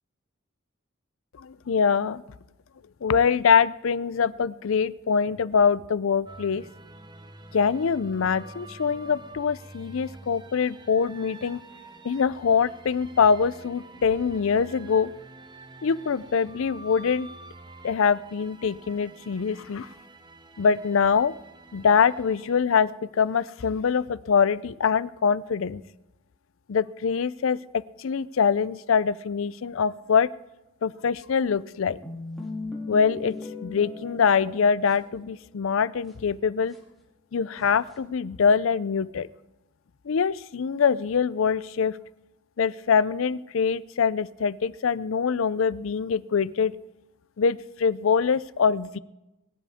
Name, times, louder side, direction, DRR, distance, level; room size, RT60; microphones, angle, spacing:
voice 1, 1.4-2.2 3.0-6.6 7.5-11.6 12.0-15.1 15.8-17.3 17.8-19.9 20.6-21.3 21.7-25.8 26.7-27.6 28.0-30.3 30.8-32.0 32.9-33.4 33.6-36.7 37.3-39.3 40.1-42.0 42.6-46.7 47.4-49.0, left 6 dB, 75° left, 18 dB, 0.5 m, -24 dB
sound 1, 6.3-22.6, right 2 dB, 20° right, 0.8 m, -47 dB
sound 2, 32.0-35.6 36.1-36.2 36.7-36.8 37.6-38.0, left 3 dB, ahead, 2.5 m, -38 dB
21.5 x 11.0 x 3.6 m, 0.97 s
head